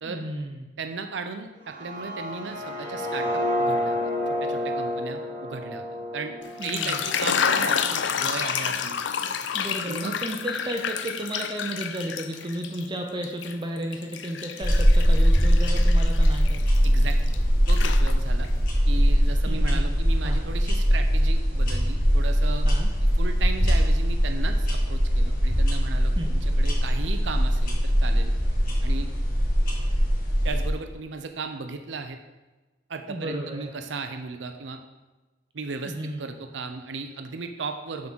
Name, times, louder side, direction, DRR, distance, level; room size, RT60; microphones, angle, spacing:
voice 1, 0.0-0.7 6.6-7.0 9.5-16.6 19.5-19.8 20.2-20.4 22.6-22.9 26.2-26.3 33.1-33.7 35.8-36.2, right 1 dB, 25° right, 3 dB, 0.5 m, -33 dB
voice 2, 0.8-4.0 4.3-5.9 6.1-9.0 9.8-10.2 16.8-17.2 17.7-18.5 18.9-22.7 23.2-28.3 28.8-29.1 30.4-32.2 32.9-34.8 35.5-38.1, right 4 dB, 80° right, 6 dB, 0.6 m, -36 dB
sound 1, 1.6-7.6, left 1 dB, 45° right, 1.2 m, -30 dB
sound 2, 6.4-12.9 13.2-17.4 17.7-18.5, left 7 dB, 80° left, 0.5 m, -29 dB
sound 3, 14.6-30.7, equal, 50° left, 1.9 m, -21 dB
7.1 x 3.9 x 6.1 m, 1.1 s
head